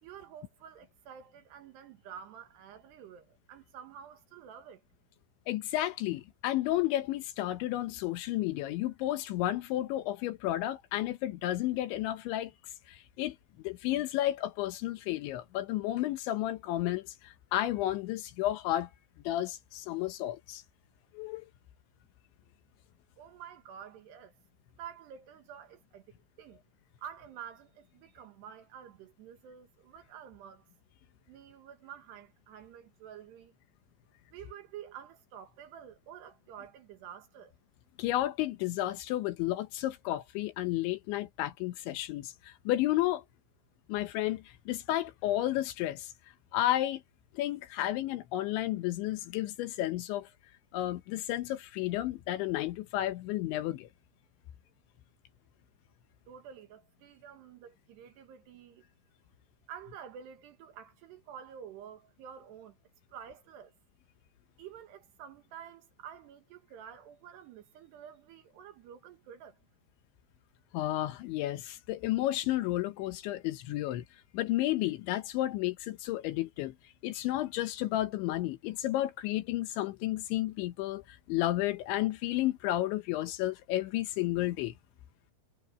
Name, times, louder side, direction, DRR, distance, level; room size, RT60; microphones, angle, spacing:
voice 1, 0.0-4.8 23.2-24.3 24.8-26.6 27.0-30.7 31.3-33.5 34.3-37.6 56.3-58.9 59.7-62.8 63.1-63.7 64.6-69.6, right 8 dB, 70° right, 3.2 m, -49 dB
voice 2, 5.5-12.5 12.9-18.9 19.2-20.6 21.1-21.5 38.0-43.2 43.9-46.1 46.5-47.0 47.3-50.3 50.7-53.9 70.7-74.0 74.3-76.7 77.0-84.7, left 14 dB, 75° left, 3.2 m, -32 dB
omnidirectional pair, 5.7 m